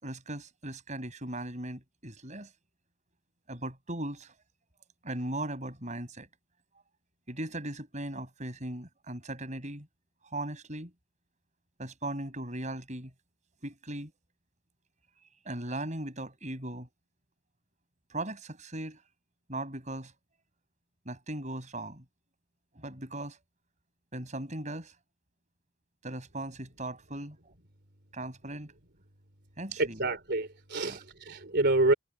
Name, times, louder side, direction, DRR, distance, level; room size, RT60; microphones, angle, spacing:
voice 1, 0.0-2.5 3.5-4.3 5.0-6.3 7.3-9.9 10.3-10.9 11.8-13.1 13.6-14.1 15.4-16.9 18.1-19.0 19.5-20.1 21.1-22.0 22.8-23.4 24.1-24.9 26.0-27.4 28.1-28.7 29.6-30.0 30.8-31.0, right 1 dB, 35° right, 7.4 m, -38 dB
voice 2, 29.8-31.9, right 2 dB, 60° right, 3.9 m, -27 dB
head